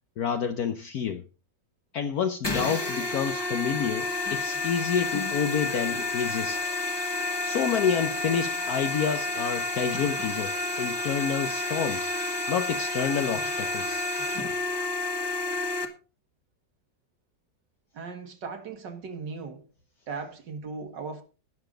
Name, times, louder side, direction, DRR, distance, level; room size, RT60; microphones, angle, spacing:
voice 1, 0.2-1.2 1.9-6.6 7.4-12.1 12.5-14.1, left 7 dB, 65° left, 1.2 m, -29 dB
sound 1, 2.4-15.9, left 2 dB, 15° left, 1.5 m, -30 dB
voice 2, 17.9-19.7 20.1-21.2, right 4 dB, 75° right, 2.3 m, -37 dB
19.5 x 7.0 x 3.8 m
omnidirectional pair, 1.9 m